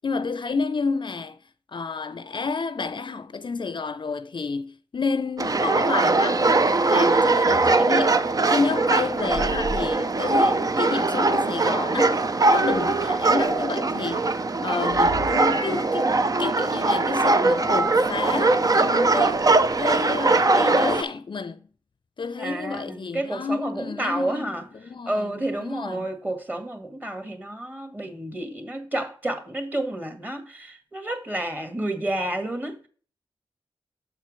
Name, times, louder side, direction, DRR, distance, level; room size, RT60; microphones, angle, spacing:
voice 1, 0.0-1.4 1.7-8.2 8.5-14.4 14.6-16.1 16.4-21.6 22.2-24.5 24.8-25.3 25.6-26.1, left 4 dB, 55° left, 0.6 m, -30 dB
sound 1, 5.4-21.0, right 3 dB, 40° right, 0.6 m, -21 dB
sound 2, 7.5-7.8 9.1-10.8 12.7-13.8 14.9-16.0 17.5-18.1 19.1-20.0, right 2 dB, 55° right, 1.4 m, -35 dB
voice 2, 22.4-32.9, right 1 dB, 20° right, 1.9 m, -30 dB
7.2 x 4.4 x 6.2 m
cardioid pair, 65°, 10 cm